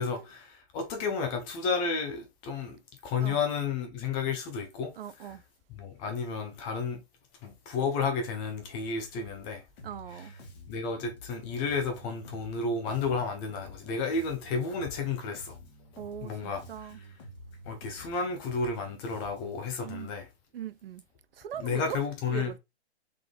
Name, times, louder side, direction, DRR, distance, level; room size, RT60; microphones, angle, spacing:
voice 1, 0.0-4.9 5.8-7.0 7.4-9.6 10.2-10.3 10.7-15.6 16.2-16.9 17.7-20.3 21.6-22.5, left 5 dB, 15° left, 0.5 m, -32 dB
voice 2, 5.0-5.4 9.8-10.3 16.0-17.0 19.8-20.1 20.5-21.0 21.4-22.0 22.3-22.6, right 9 dB, 55° right, 0.5 m, -40 dB
Bass guitar, 9.8-19.7, equal, 35° left, 1.5 m, -50 dB
3.8 x 3.7 x 3.2 m
hypercardioid pair, 135°, 34 cm